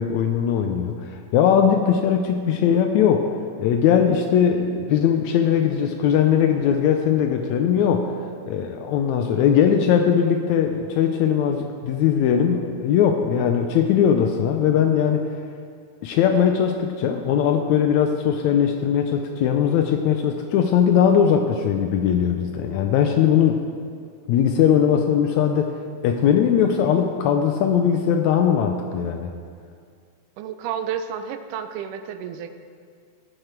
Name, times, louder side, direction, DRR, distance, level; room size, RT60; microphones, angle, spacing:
voice 1, 0.0-3.3 3.6-8.1 8.5-15.3 16.0-23.6 24.3-25.8 26.0-29.3, left 8 dB, 80° left, 5 dB, 1.7 m, -20 dB
voice 2, 30.4-32.5, right 8 dB, 80° right, 9 dB, 2.1 m, -31 dB
17.0 x 6.7 x 4.4 m, 2.2 s
omnidirectional pair, 3.7 m